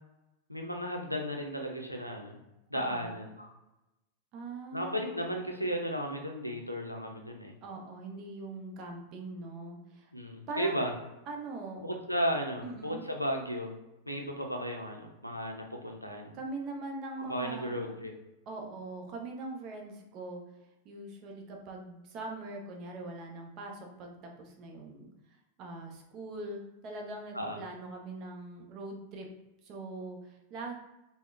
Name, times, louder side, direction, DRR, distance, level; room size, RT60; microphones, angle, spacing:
voice 1, 0.5-2.4 2.7-3.5 4.7-7.5 10.1-10.9 11.8-13.7 14.1-16.4 17.2-18.1 27.3-27.6, equal, 90° left, 2 dB, 0.4 m, -34 dB
voice 2, 2.7-3.1 4.3-5.3 7.6-10.1 10.5-10.9 11.3-11.8 12.6-13.0 16.3-17.9 18.5-20.4 20.8-25.1 25.6-29.3 29.6-30.7, right 2 dB, 35° right, 1 dB, 0.6 m, -42 dB
3.5 x 2.1 x 2.4 m, 0.98 s
figure-of-eight pair, 90°, 0 cm